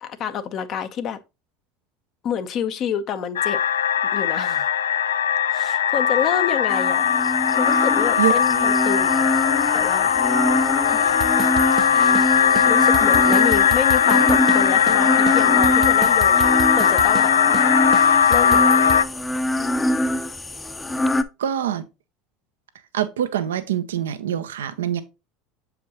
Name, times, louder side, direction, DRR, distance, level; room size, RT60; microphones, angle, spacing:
voice 1, 0.0-1.2 2.2-3.6 4.1-4.7 5.5-7.1 7.5-9.3 9.7-10.1 10.9-11.2 11.9-17.3 18.3-19.0, left 8 dB, 50° left, 0.8 m, -28 dB
sound 1, 3.4-19.0, left 8 dB, 85° left, 0.3 m, -19 dB
sound 2, 6.7-21.2, left 1 dB, 15° left, 0.7 m, -24 dB
sound 3, 11.2-12.3 12.5-12.7 12.9-14.6 14.9-15.0 15.3-17.3 17.5-17.7 17.9-19.0, right 7 dB, 40° right, 0.5 m, -31 dB
voice 2, 21.4-21.8 22.9-25.0, right 10 dB, 85° right, 0.6 m, -24 dB
7.1 x 5.1 x 2.9 m
hypercardioid pair, 80°, 0 cm